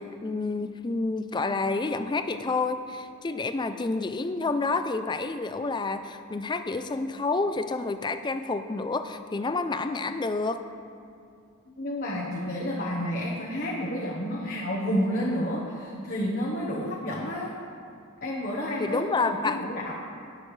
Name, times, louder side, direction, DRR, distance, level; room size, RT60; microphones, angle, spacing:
voice 1, 0.0-10.6 18.8-19.6, left 3 dB, 20° left, 9 dB, 0.4 m, -29 dB
voice 2, 11.7-17.5 18.2-19.9, equal, 45° left, -4 dB, 1.1 m, -30 dB
18.0 x 6.6 x 3.2 m, 2.4 s
head